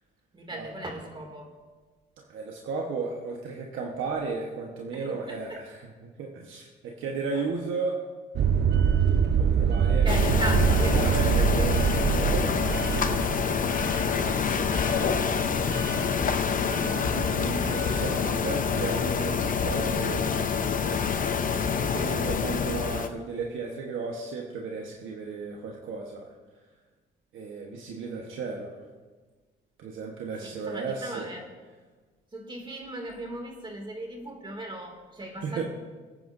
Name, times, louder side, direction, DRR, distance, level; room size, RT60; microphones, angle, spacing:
voice 1, 0.3-1.5 4.9-5.6 7.3-7.4 9.9-11.7 15.5-16.2 16.6-17.8 30.4-31.4 32.3-35.6, right 1 dB, 25° right, 2 dB, 2.5 m, -38 dB
voice 2, 2.3-8.0 9.4-10.1 10.8-11.8 12.1-13.3 13.9-14.5 16.8-20.3 20.8-26.2 27.3-28.8 29.8-31.3 35.4-35.6, right 4 dB, 80° right, 0 dB, 1.3 m, -35 dB
sound 1, 8.4-20.2, right 7 dB, 60° right, 0.8 m, -27 dB
sound 2, 10.1-23.1, left 6 dB, 45° left, 0.8 m, -27 dB
23.0 x 9.2 x 2.7 m, 1.4 s
cardioid pair, 90°, 20 cm